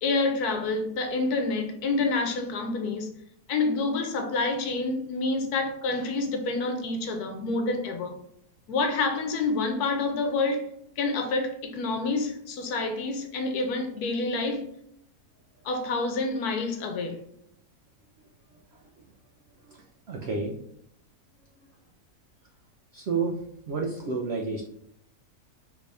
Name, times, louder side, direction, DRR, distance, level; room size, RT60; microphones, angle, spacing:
voice 1, 0.0-3.1 3.5-8.1 8.7-10.7 11.0-14.6 15.6-17.2, left 3 dB, 75° left, 5 dB, 1.2 m, -28 dB
voice 2, 18.5-19.1 19.7-20.6 21.6-21.7 22.9-24.6, right 4 dB, 80° right, 1 dB, 0.5 m, -32 dB
3.3 x 2.6 x 3.3 m, 0.73 s
omnidirectional pair, 1.6 m